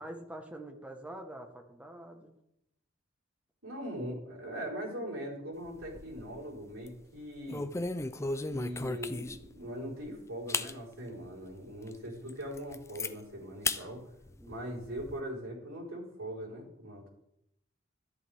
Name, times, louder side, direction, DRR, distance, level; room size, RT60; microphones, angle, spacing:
voice 1, 0.0-2.4 13.8-13.9 14.4-14.6, right 1 dB, 5° right, 3 dB, 1.3 m, -45 dB
voice 2, 3.6-7.7 8.5-14.0 14.5-17.1, equal, 80° right, -4 dB, 4.5 m, -41 dB
sound 1, 5.7-6.4 6.7-7.0 7.5-9.6 10.0-10.1 10.5-10.7 11.3-11.4 11.9-12.0 12.3-13.1 13.6-13.8 14.2-15.1, left 3 dB, 15° left, 0.4 m, -35 dB
13.0 x 11.0 x 3.5 m, 0.81 s
head